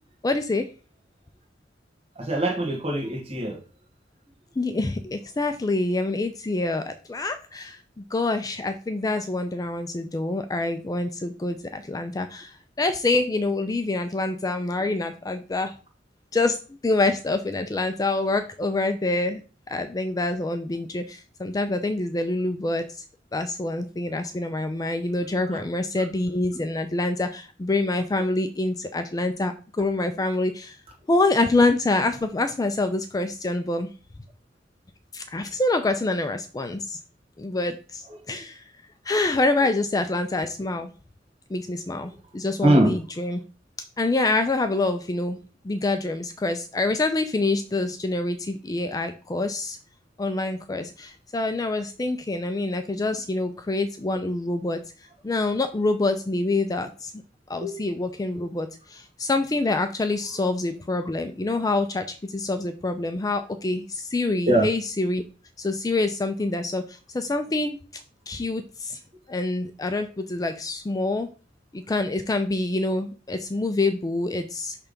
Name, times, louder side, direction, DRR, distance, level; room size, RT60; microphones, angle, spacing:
voice 1, 0.2-0.7 4.6-15.7 16.3-16.6 16.8-19.4 19.7-23.0 23.3-30.8 31.1-33.9 35.1-37.0 37.4-38.6 39.0-40.9 41.5-43.4 44.0-45.4 45.6-49.8 50.2-54.8 55.2-57.1 57.5-65.2 65.6-67.8 68.3-69.0 69.3-71.3 71.7-74.8, left 2 dB, 20° left, 8 dB, 0.4 m, -26 dB
voice 2, 2.1-3.6 25.5-25.6 38.1-38.2 39.6-39.7 42.6-42.9 57.6-57.7 64.5-64.7, right 1 dB, 35° right, 3 dB, 1.6 m, -22 dB
5.8 x 3.3 x 5.2 m, 0.36 s
head